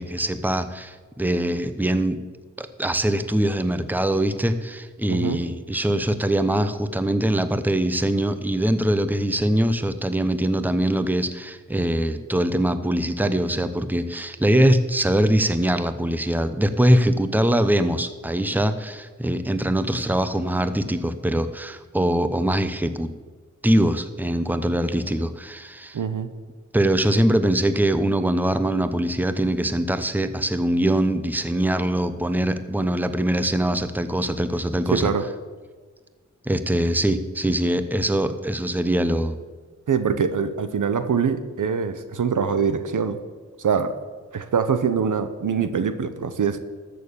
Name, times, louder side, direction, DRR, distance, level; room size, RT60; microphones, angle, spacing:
voice 1, 0.0-2.2 2.6-23.1 23.6-26.0 26.7-35.1 36.4-39.3, right 1 dB, 5° right, 10 dB, 0.8 m, -22 dB
voice 2, 5.1-5.4 25.9-26.3 34.9-35.3 39.9-43.2 43.6-43.9 44.3-46.6, right 6 dB, 80° right, 10 dB, 0.9 m, -23 dB
13.5 x 6.8 x 7.0 m, 1.4 s
cardioid pair, 50°, 31 cm